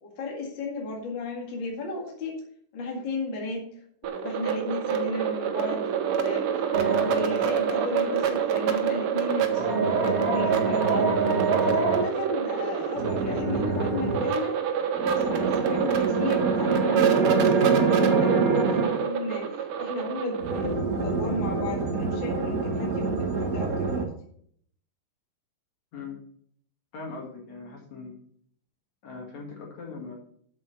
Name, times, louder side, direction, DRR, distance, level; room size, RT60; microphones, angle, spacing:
voice 1, 0.0-2.4 2.7-3.6 4.0-14.6 15.1-24.1, left 2 dB, 40° left, -1 dB, 2.2 m, -34 dB
sound 1, 4.0-20.7, right 8 dB, 80° right, 1.2 m, -27 dB
sound 2, 6.7-7.6 9.4-12.1 12.9-14.3 14.9-19.0 20.4-24.0, right 4 dB, 65° right, 0.8 m, -26 dB
voice 2, 25.9-26.2 26.9-28.2 29.0-30.2, left 4 dB, 60° left, 0 dB, 3.0 m, -40 dB
7.6 x 7.0 x 5.9 m, 0.62 s
omnidirectional pair, 3.8 m